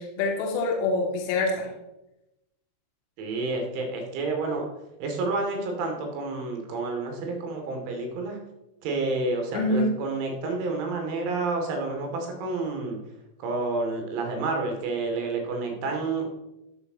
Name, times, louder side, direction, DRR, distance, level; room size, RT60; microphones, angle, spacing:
voice 1, 0.0-1.7 9.5-9.9, left 2 dB, 45° left, 1 dB, 2.5 m, -25 dB
voice 2, 3.2-4.6 5.0-8.4 8.8-13.0 13.4-16.3, right 3 dB, 45° right, 2 dB, 2.6 m, -29 dB
13.0 x 7.9 x 3.0 m, 0.92 s
figure-of-eight pair, 90°, 0 cm